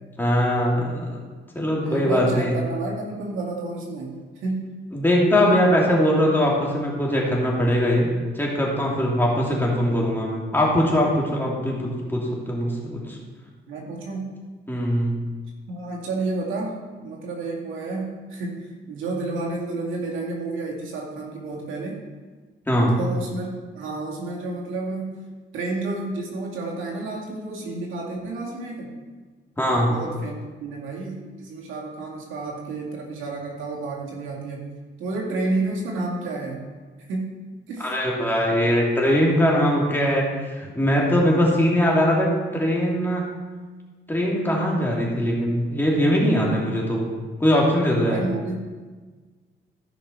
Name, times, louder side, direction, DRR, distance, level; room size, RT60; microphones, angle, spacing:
voice 1, 0.2-1.2 1.5-2.5 4.9-13.2 14.7-15.3 22.7-23.0 29.6-29.9 37.8-43.3 44.1-47.0 47.4-48.2, equal, 10° left, -4 dB, 3.0 m, -21 dB
voice 2, 1.8-4.7 13.7-14.4 15.7-22.0 23.0-25.2 25.5-28.9 29.7-34.7 35.0-36.7 37.1-37.4 37.7-37.9 38.5-38.6 48.0-48.9, right 2 dB, 85° right, -2 dB, 2.3 m, -31 dB
14.5 x 5.8 x 4.7 m, 1.4 s
cardioid pair, 90°, 20 cm